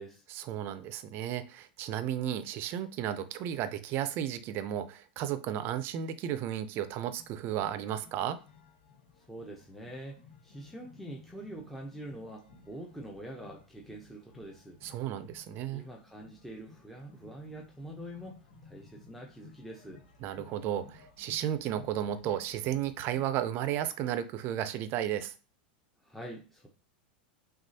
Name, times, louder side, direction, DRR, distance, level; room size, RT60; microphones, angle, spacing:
voice 1, 0.3-8.4 14.8-15.8 20.2-25.3, right 11 dB, 45° right, 0.5 m, -33 dB
sound 1, 7.1-23.2, left 4 dB, 85° left, 1.4 m, -57 dB
voice 2, 9.3-14.8 15.7-20.0 26.0-26.7, right 1 dB, ahead, 0.7 m, -45 dB
6.0 x 2.4 x 2.7 m
hypercardioid pair, 110°, 5 cm